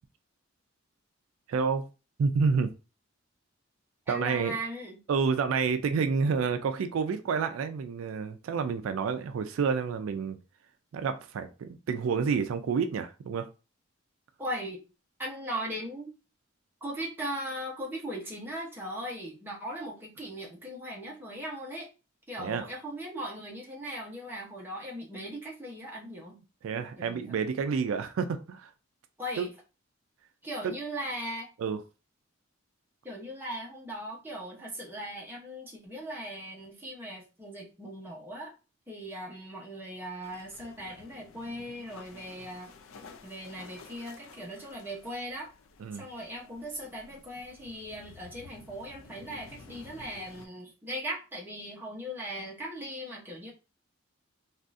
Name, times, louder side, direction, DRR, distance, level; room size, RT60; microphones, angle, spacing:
voice 1, 1.5-1.9 2.2-2.7 4.1-4.6 5.1-10.4 10.9-13.5 22.4-22.7 26.6-28.7 29.4-29.5 30.6-30.7 31.6-31.8 45.8-46.1, right 5 dB, 80° right, 0.3 m, -29 dB
voice 2, 4.1-5.0 14.4-14.8 15.2-16.1 16.8-21.9 22.3-26.4 27.0-27.3 29.2-29.5 30.4-31.5 33.0-38.5 38.9-42.7 43.2-45.5 45.9-53.5, equal, 10° right, 0.8 m, -39 dB
sound 1, 40.2-50.5, left 4 dB, 80° left, 0.4 m, -52 dB
3.5 x 2.4 x 2.5 m
head